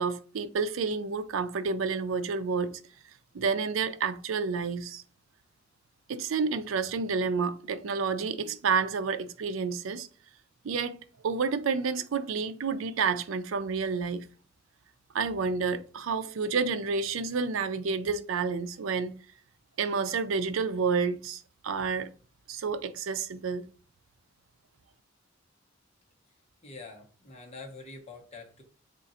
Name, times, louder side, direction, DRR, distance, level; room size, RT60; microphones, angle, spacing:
voice 1, 0.0-2.8 3.3-5.0 6.1-10.1 10.6-11.0 11.2-14.2 15.1-19.2 19.8-22.1 22.5-23.7, right 5 dB, 80° right, 0.4 m, -29 dB
voice 2, 26.6-28.6, left 3 dB, 30° left, 1.0 m, -45 dB
3.7 x 2.5 x 4.1 m
head